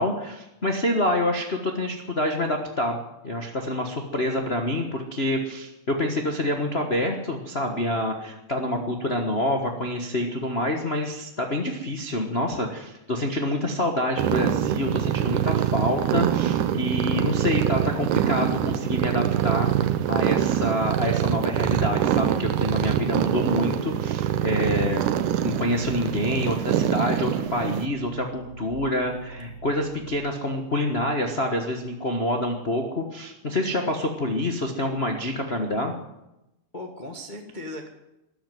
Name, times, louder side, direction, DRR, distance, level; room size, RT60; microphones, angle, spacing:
voice 1, 0.0-3.0 3.2-19.7 20.1-25.1 25.4-35.9, left 1 dB, 80° left, 2 dB, 0.5 m, -27 dB
sound 1, 14.2-27.9, right 11 dB, 80° right, 2.3 m, -24 dB
sound 2, 24.3-30.1, right 3 dB, 50° right, 1.2 m, -43 dB
voice 2, 36.7-37.9, left 1 dB, 35° left, 3 dB, 0.7 m, -38 dB
13.5 x 11.5 x 9.2 m, 0.93 s
omnidirectional pair, 3.6 m